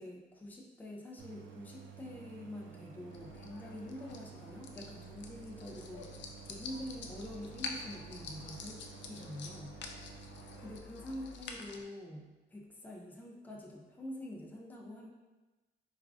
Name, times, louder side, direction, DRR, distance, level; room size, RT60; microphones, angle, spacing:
voice 1, 0.0-8.8 9.1-9.8 10.6-15.1, left 1 dB, 10° left, -1 dB, 0.5 m, -46 dB
Idling, 1.2-10.8, right 7 dB, 85° right, 0.4 m, -52 dB
sound 1, 3.1-11.8, left 3 dB, 65° left, 0.4 m, -47 dB
4.4 x 2.4 x 2.5 m, 1.2 s
cardioid pair, 90°, 20 cm